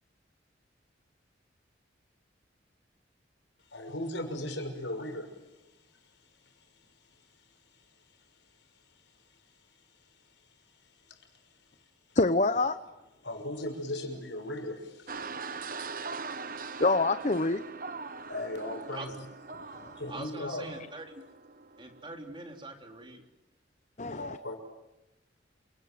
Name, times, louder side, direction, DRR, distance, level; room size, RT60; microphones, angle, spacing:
voice 1, 3.7-5.3 13.2-15.9 16.5-16.8 18.3-19.2 20.0-20.7 24.1-24.6, left 1 dB, 85° left, 6.1 m, -37 dB
voice 2, 12.1-12.8 16.8-17.6 19.8-20.2 24.0-24.4, left 2 dB, 40° left, 0.9 m, -26 dB
sound 1, 15.1-22.1, right 4 dB, 50° right, 1.1 m, -42 dB
voice 3, 20.1-21.2 21.8-23.2, right 2 dB, 25° right, 3.7 m, -43 dB
28.5 x 25.5 x 7.8 m
head